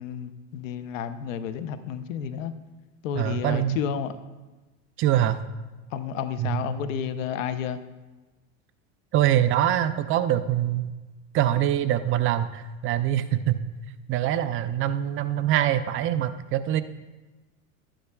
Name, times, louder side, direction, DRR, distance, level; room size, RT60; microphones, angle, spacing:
voice 1, 0.0-2.5 3.0-4.2 5.9-7.8, left 8 dB, 90° left, 11 dB, 0.8 m, -31 dB
voice 2, 3.2-3.8 5.0-5.4 6.4-6.6 9.1-10.9 11.3-13.6 14.1-16.8, right 11 dB, 35° right, 11 dB, 0.4 m, -24 dB
12.0 x 10.0 x 2.3 m, 1.2 s
supercardioid pair, 130°, 38 cm